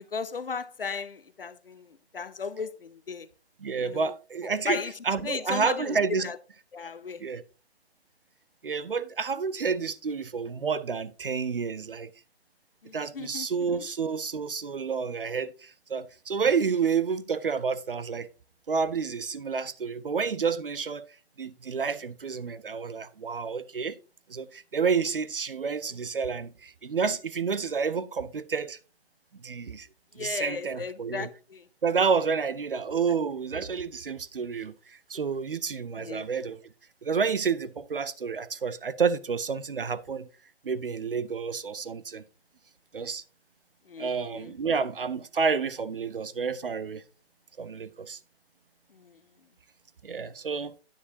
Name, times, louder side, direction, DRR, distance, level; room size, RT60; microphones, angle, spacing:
voice 1, 0.0-3.3 3.8-4.1 4.6-4.9 5.2-6.0 6.2-6.4 6.7-7.2 12.8-13.5 30.2-31.7 36.0-36.3 43.9-44.5 49.0-49.2, left 5 dB, 60° left, 0.6 m, -36 dB
voice 2, 3.6-6.3 7.2-7.4 8.6-12.1 12.9-18.3 18.7-24.0 24.3-28.8 29.4-29.9 30.2-31.3 31.8-36.6 37.0-40.3 40.6-42.2 42.9-43.2 44.0-47.0 47.6-48.2 50.0-50.7, right 5 dB, 55° right, 0.6 m, -29 dB
10.0 x 9.5 x 2.8 m
figure-of-eight pair, 140°, 33 cm